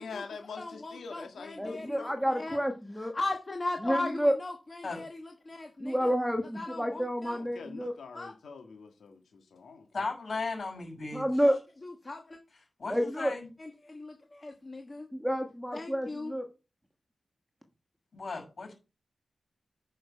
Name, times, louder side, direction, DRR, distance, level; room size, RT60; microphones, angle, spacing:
voice 1, 0.0-2.2 7.3-10.1, left 5 dB, 90° left, 1.7 m, -45 dB
voice 2, 0.6-2.6 3.0-6.1 6.5-7.4 8.1-8.3 11.5-11.6 11.8-12.4 13.6-15.1 15.7-16.3, left 2 dB, 25° left, 1.3 m, -38 dB
voice 3, 1.6-3.1 3.8-4.3 5.8-7.9 11.1-11.6 12.9-13.3 15.1-16.5, equal, ahead, 1.3 m, -29 dB
voice 4, 9.9-11.3 12.8-13.5 18.1-18.7, left 3 dB, 45° left, 6.2 m, -36 dB
9.5 x 6.2 x 5.5 m
wide cardioid pair, 140°, 0 cm